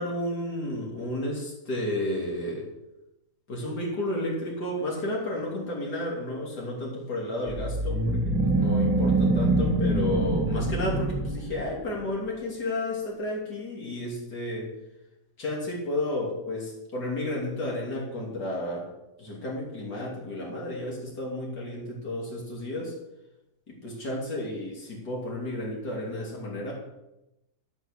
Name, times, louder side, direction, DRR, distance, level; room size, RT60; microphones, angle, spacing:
voice 1, 0.0-2.7 3.5-14.7 15.4-18.9 19.2-22.9 23.8-26.7, left 1 dB, 85° left, -4 dB, 3.6 m, -32 dB
sound 1, 7.5-11.9, right 2 dB, 80° right, 3.3 m, -25 dB
12.5 x 6.2 x 6.6 m, 0.94 s
omnidirectional pair, 1.7 m